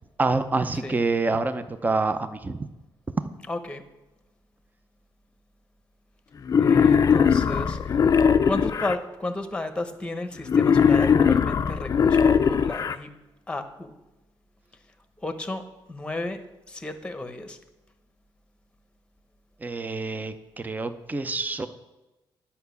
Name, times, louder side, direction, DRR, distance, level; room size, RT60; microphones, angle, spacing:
voice 1, 0.2-2.7 19.6-21.7, right 3 dB, 20° right, 10 dB, 0.7 m, -27 dB
voice 2, 3.5-3.9 6.6-8.0 8.5-13.2 13.5-13.9 15.2-17.6, left 2 dB, 10° left, 9 dB, 1.0 m, -33 dB
Wild animals, 6.5-9.0 10.5-13.0, left 6 dB, 40° left, 0.5 m, -20 dB
11.0 x 5.7 x 8.2 m, 1.0 s
cardioid pair, 130°, 9 cm